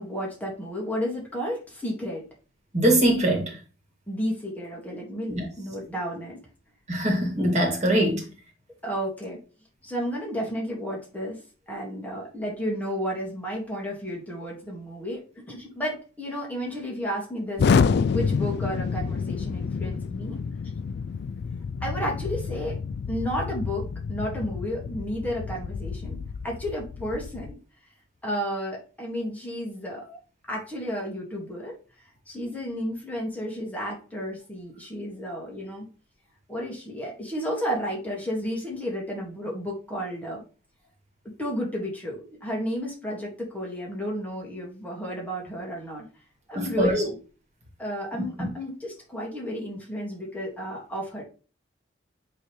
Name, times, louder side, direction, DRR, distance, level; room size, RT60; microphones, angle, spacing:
voice 1, 0.0-2.2 4.1-6.4 8.8-9.4 9.8-11.4 11.7-20.4 21.8-22.7 23.1-26.2 26.4-27.5 28.2-30.2 30.5-31.7 32.3-35.9 36.5-40.4 41.4-46.1 46.5-47.2 47.8-51.2, equal, 10° left, 1.8 m, -32 dB
voice 2, 2.7-3.6 5.3-5.5 6.9-8.2 46.5-47.0 48.1-48.5, right 1 dB, 40° right, 2.0 m, -23 dB
Explosion, 17.6-27.5, left 5 dB, 60° left, 0.3 m, -28 dB
8.9 x 3.4 x 3.1 m
head